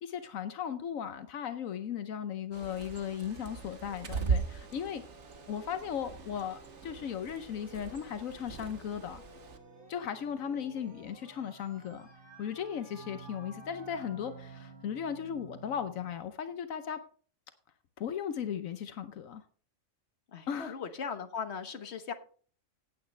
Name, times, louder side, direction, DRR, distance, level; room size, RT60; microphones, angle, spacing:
voice 1, 0.0-5.0 5.5-9.2 9.9-12.1 12.4-17.0 18.0-19.4 20.5-20.8, left 8 dB, 80° left, 10 dB, 1.2 m, -37 dB
sound 1, 2.5-16.2, right 3 dB, 40° right, 2.3 m, -53 dB
Bird, 2.5-9.6, right 5 dB, 60° right, 1.5 m, -39 dB
voice 2, 20.3-22.1, left 6 dB, 55° left, 8 dB, 1.5 m, -38 dB
16.5 x 8.8 x 3.3 m, 0.43 s
omnidirectional pair, 1.4 m